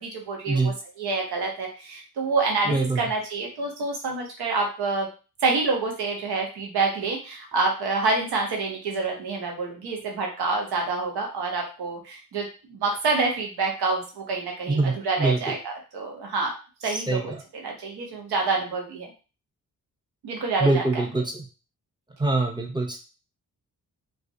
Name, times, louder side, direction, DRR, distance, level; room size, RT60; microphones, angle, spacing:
voice 1, 0.0-5.1 5.4-16.5 16.8-19.1 20.2-21.0, right 3 dB, 90° right, 1 dB, 0.7 m, -27 dB
voice 2, 2.7-3.1 14.7-15.4 16.8-17.4 20.6-21.5 22.2-23.0, right 3 dB, 10° right, 2 dB, 0.5 m, -24 dB
2.3 x 2.0 x 2.6 m, 0.34 s
cardioid pair, 55°, 37 cm